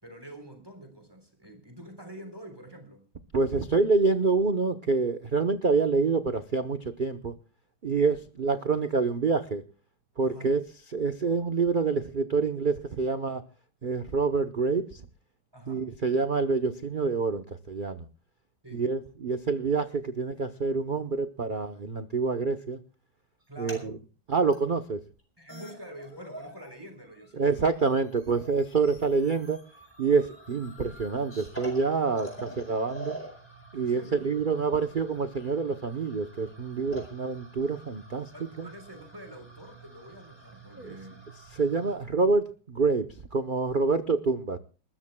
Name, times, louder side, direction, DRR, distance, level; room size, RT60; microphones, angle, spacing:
voice 1, 0.0-3.1 8.0-8.2 10.2-10.5 11.2-11.4 15.5-15.9 18.6-18.8 23.5-24.0 25.4-27.8 33.7-34.3 38.3-41.2, equal, 10° right, 5 dB, 3.7 m, -46 dB
voice 2, 3.3-7.3 7.8-9.6 10.2-10.6 10.9-13.4 13.8-15.0 15.7-18.0 18.7-22.8 23.6-23.8 24.3-25.0 27.3-29.6 30.0-33.2 33.7-38.3 38.6-38.7 40.8-41.0 41.5-44.6, right 4 dB, 65° right, 9 dB, 0.5 m, -27 dB
sound 1, 23.4-23.8 24.5-24.6 25.2-25.3 25.5-26.7 27.0-41.9, right 1 dB, 5° left, 4.1 m, -47 dB
29.5 x 13.5 x 2.2 m, 0.37 s
omnidirectional pair, 2.1 m